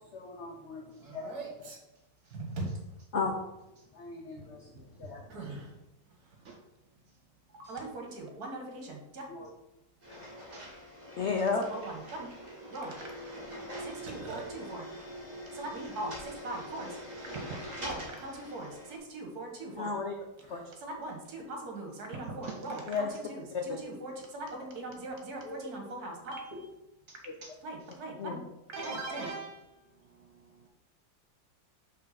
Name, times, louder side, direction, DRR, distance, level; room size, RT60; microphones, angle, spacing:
voice 1, 0.0-1.4 3.1-3.3 3.9-5.5 9.3-9.5 10.1-10.3 11.2-11.6 19.7-20.1 20.5-20.6 22.9-23.1 23.5-23.8 25.4-25.6 27.3-27.4 28.2-28.4 28.8-28.9, left 4 dB, 65° left, 3 dB, 0.6 m, -35 dB
voice 2, 1.0-1.8 2.3-2.7 5.3-5.7 7.6-9.2 11.7-12.3 12.7-13.3 13.8-14.9 15.5-16.1 16.4-17.0 17.8-19.9 20.8-26.7 27.6-28.4 28.7-29.7, right 2 dB, 60° right, 1 dB, 1.7 m, -40 dB
sound 1, 10.0-19.0, equal, 25° right, 1.6 m, -44 dB
voice 3, 10.1-10.7 12.3-12.4 16.8-16.9 22.4-23.1 27.1-27.5 28.8-29.4 30.1-30.7, right 5 dB, 75° right, 2 dB, 0.6 m, -50 dB
5.4 x 3.9 x 5.7 m, 0.93 s
omnidirectional pair, 2.0 m